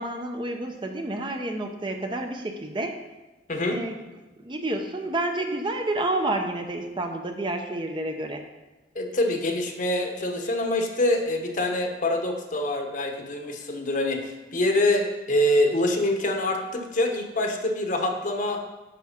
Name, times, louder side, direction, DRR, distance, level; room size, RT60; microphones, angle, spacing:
voice 1, 0.0-3.0 3.7-4.0 4.4-8.4, right 1 dB, 25° right, 4 dB, 0.7 m, -29 dB
voice 2, 3.5-3.8 8.9-18.6, left 1 dB, 45° left, 3 dB, 1.0 m, -25 dB
9.4 x 4.8 x 5.7 m, 1.1 s
head